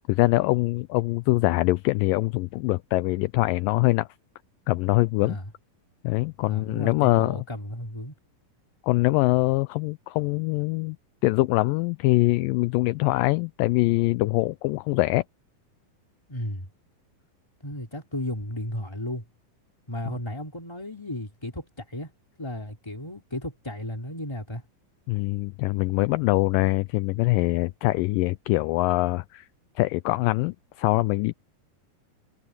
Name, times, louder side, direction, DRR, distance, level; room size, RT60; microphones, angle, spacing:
voice 1, 0.1-4.1 4.7-5.4 6.0-7.4 8.8-11.0 11.2-15.2 20.1-20.2 25.1-29.5 29.8-31.3, left 21 dB, 80° left, 2.0 m, -23 dB
voice 2, 5.2-5.5 6.4-8.1 16.3-16.7 17.6-19.2 19.9-22.1 22.4-24.6, left 1 dB, 5° left, 3.4 m, -34 dB
omnidirectional pair, 4.2 m